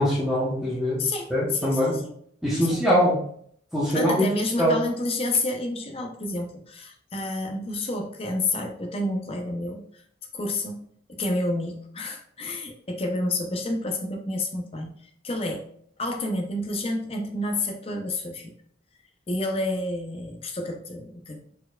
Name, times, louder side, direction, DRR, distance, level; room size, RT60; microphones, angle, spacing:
voice 1, 0.0-1.0 1.3-2.0 2.4-3.2 3.7-4.3 4.6-4.8, equal, 5° right, -10 dB, 1.0 m, -22 dB
voice 2, 1.0-2.1 2.7-2.8 3.9-9.8 10.3-10.8 11.1-14.9 15.2-15.7 16.0-18.5 19.3-21.5, left 2 dB, 30° left, 3 dB, 0.6 m, -29 dB
4.4 x 4.4 x 2.3 m, 0.63 s
head